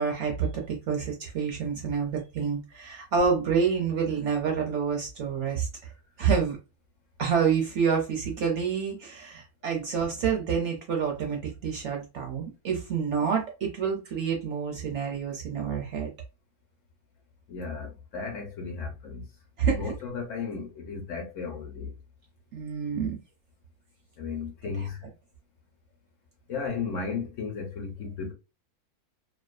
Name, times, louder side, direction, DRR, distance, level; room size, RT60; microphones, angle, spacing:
voice 1, 0.0-5.9 6.2-6.6 7.2-16.1 19.6-19.9 22.5-23.2 24.8-24.9, right 6 dB, 60° right, 0.8 m, -28 dB
voice 2, 17.5-19.2 19.7-21.9 24.2-25.0 26.5-28.3, left 5 dB, 65° left, 0.8 m, -34 dB
2.5 x 2.3 x 2.2 m
omnidirectional pair, 1.6 m